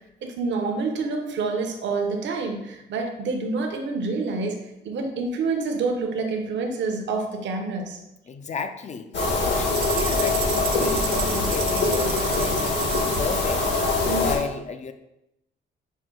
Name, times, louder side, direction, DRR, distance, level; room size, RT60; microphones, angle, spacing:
voice 1, 0.2-8.0, right 4 dB, 65° right, 4 dB, 0.8 m, -27 dB
voice 2, 8.3-9.1 9.4-13.6 14.1-14.9, left 5 dB, 35° left, 8 dB, 0.4 m, -33 dB
sound 1, 9.1-14.4, left 3 dB, 65° left, 1.2 m, -23 dB
sound 2, 9.7-13.3, right 9 dB, 50° right, 0.4 m, -33 dB
6.1 x 2.1 x 3.8 m, 0.88 s
cardioid pair, 90°, 20 cm